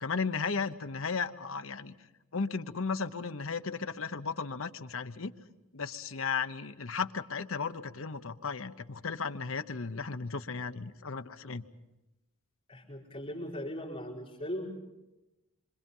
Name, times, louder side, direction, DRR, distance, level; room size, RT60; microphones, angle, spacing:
voice 1, 0.0-1.9 2.3-5.3 5.7-11.6, left 5 dB, 70° left, 9 dB, 1.0 m, -35 dB
voice 2, 12.7-14.8, equal, 25° left, -5 dB, 4.6 m, -39 dB
27.0 x 24.5 x 5.5 m, 1.0 s
head